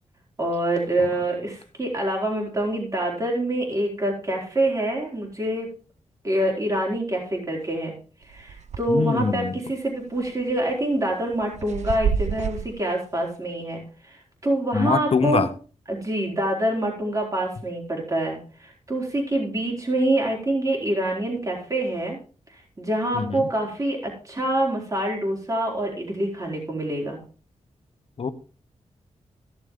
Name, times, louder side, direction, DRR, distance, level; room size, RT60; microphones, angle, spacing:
voice 1, 0.4-5.7 6.2-7.9 8.2-15.5 15.9-22.2 22.5-27.2, right 1 dB, 30° right, -1 dB, 4.1 m, -26 dB
sound 1, 8.3-9.0 9.4-9.5 10.2-10.5 11.1-12.7, right 7 dB, 70° right, 0.6 m, -28 dB
voice 2, 8.9-9.6 14.7-15.5 23.1-23.5 28.2-28.3, left 5 dB, 50° left, 11 dB, 1.1 m, -23 dB
16.0 x 7.2 x 3.7 m, 0.38 s
wide cardioid pair, 95°, 12 cm